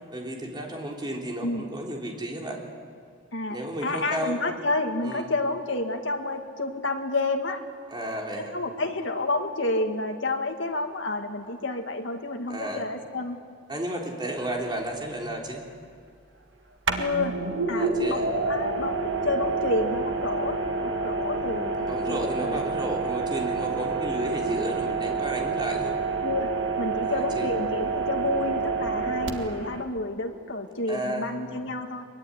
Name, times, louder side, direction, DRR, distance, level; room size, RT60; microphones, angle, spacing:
voice 1, 0.1-2.6 3.5-4.4 5.0-5.3 7.9-8.6 12.5-12.8 13.7-15.6 17.7-18.3 21.8-26.0 27.0-27.5 30.9-31.3, right 1 dB, 20° right, 0 dB, 3.6 m, -33 dB
voice 2, 3.3-7.6 8.3-13.4 17.0-17.4 17.7-22.6 26.2-26.5 26.8-32.1, left 2 dB, 65° left, 3 dB, 2.2 m, -30 dB
sound 1, 14.4-14.5 16.9-29.8, right 4 dB, 65° right, 2.0 m, -28 dB
23.0 x 22.5 x 9.8 m, 2.1 s
head